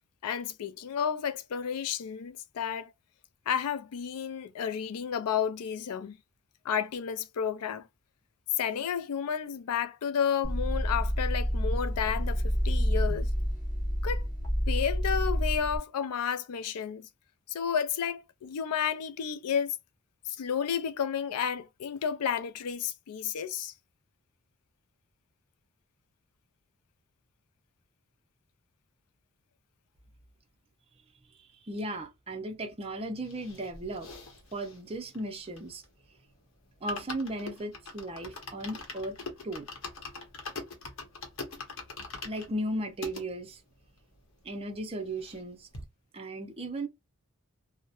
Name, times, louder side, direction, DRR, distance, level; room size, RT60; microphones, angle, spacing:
voice 1, 0.2-2.9 3.5-6.2 6.6-7.9 8.6-13.3 14.0-14.3 14.7-17.1 17.5-19.8 20.3-23.7, left 7 dB, 90° left, 0.4 m, -31 dB
sound 1, 10.4-15.8, equal, 15° left, 1.0 m, -28 dB
voice 2, 31.7-34.1 34.5-35.8 36.8-39.2 39.4-39.7 42.2-43.6 44.4-45.7 46.1-46.9, right 1 dB, 25° right, 0.5 m, -36 dB
sound 2, 33.2-36.0 36.4-36.5 36.7-43.2 43.8-43.9 44.1-44.2 44.5-45.5 45.7-45.9, left 3 dB, 60° left, 0.8 m, -43 dB
2.8 x 2.1 x 2.3 m
head